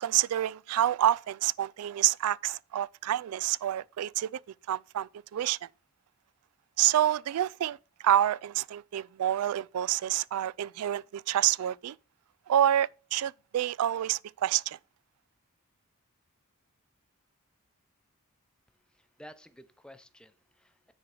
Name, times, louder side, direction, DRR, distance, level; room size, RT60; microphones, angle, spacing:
voice 1, 0.0-4.4 4.7-5.6 6.8-7.8 8.0-12.0 12.5-14.8, right 11 dB, 80° right, 0.3 m, -28 dB
voice 2, 18.9-20.9, equal, 5° left, 0.7 m, -52 dB
9.9 x 3.8 x 6.0 m
head